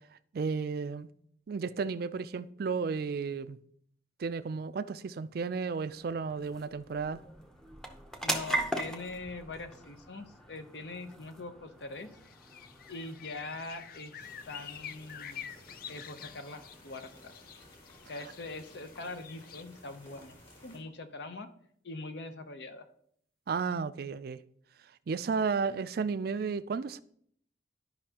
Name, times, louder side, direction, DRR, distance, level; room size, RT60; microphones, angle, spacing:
voice 1, 0.3-1.1 1.5-3.6 4.2-7.2 23.5-24.4 25.1-27.0, right 5 dB, 55° right, 0.4 m, -33 dB
sound 1, 4.8-19.7, right 1 dB, 5° left, 0.6 m, -42 dB
voice 2, 8.2-12.1 12.9-15.4 15.9-17.3 18.1-20.4 20.6-21.5 21.8-22.9, left 2 dB, 70° left, 0.8 m, -43 dB
sound 2, 12.1-19.6, left 8 dB, 50° left, 0.4 m, -48 dB
sound 3, 14.2-20.8, left 1 dB, 30° left, 2.4 m, -56 dB
12.0 x 5.4 x 2.9 m
head